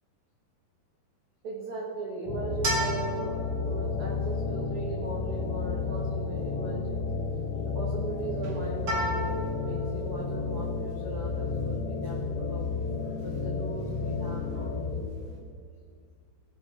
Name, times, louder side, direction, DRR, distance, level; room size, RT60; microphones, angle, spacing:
voice 1, 1.4-7.1 7.6-12.6 13.2-14.8, right 2 dB, 75° right, -3 dB, 1.2 m, -38 dB
sound 1, 2.3-15.0, left 4 dB, 80° left, 1.4 m, -32 dB
sound 2, 2.5-15.3, right 1 dB, 40° right, 2.0 m, -37 dB
18.0 x 6.1 x 5.5 m, 2.2 s
omnidirectional pair, 4.7 m